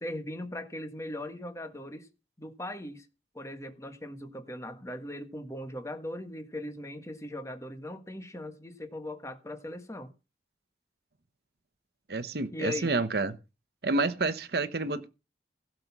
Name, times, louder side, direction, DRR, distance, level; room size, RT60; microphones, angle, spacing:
voice 1, 0.0-2.1 2.4-3.1 3.3-10.1 12.5-12.9, left 1 dB, 15° left, 1.5 m, -39 dB
voice 2, 12.1-13.4 13.8-15.1, right 3 dB, 60° right, 0.9 m, -29 dB
16.5 x 6.7 x 5.9 m
head